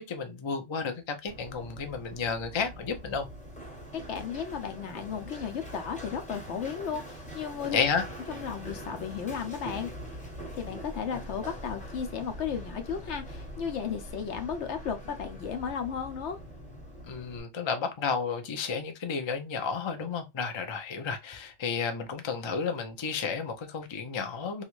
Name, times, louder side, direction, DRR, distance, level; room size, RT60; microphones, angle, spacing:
voice 1, 0.0-3.3 7.7-8.0 17.0-24.6, left 5 dB, 35° left, 0.4 m, -32 dB
Run, 1.3-17.4, equal, 5° left, 0.9 m, -43 dB
voice 2, 4.1-7.8 8.3-9.9 10.6-16.4, left 7 dB, 80° left, 1.0 m, -34 dB
3.2 x 2.5 x 2.9 m
omnidirectional pair, 1.2 m